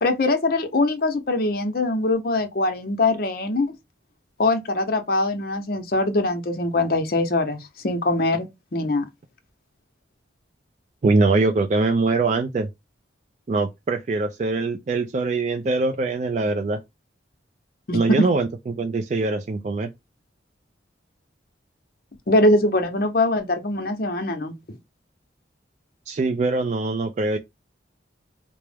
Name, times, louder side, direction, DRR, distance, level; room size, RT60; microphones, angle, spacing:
voice 1, 0.0-3.7 4.4-9.0 17.9-18.3 22.3-24.8, left 2 dB, 50° left, 0.7 m, -22 dB
voice 2, 11.0-12.7 13.5-16.8 17.9-19.9 26.1-27.4, right 3 dB, 40° right, 0.3 m, -23 dB
4.4 x 2.0 x 3.3 m
head